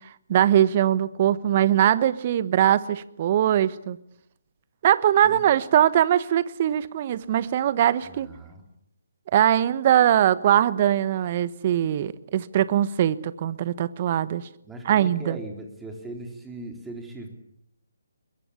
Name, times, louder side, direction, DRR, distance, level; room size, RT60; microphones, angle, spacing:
voice 1, 0.3-4.0 4.8-8.3 9.3-14.4 14.8-15.4, right 11 dB, 35° right, 17 dB, 1.1 m, -21 dB
voice 2, 8.0-8.6 14.6-17.3, right 1 dB, 5° right, 3 dB, 3.9 m, -39 dB
22.5 x 21.5 x 8.5 m, 0.72 s
figure-of-eight pair, 145°, 0 cm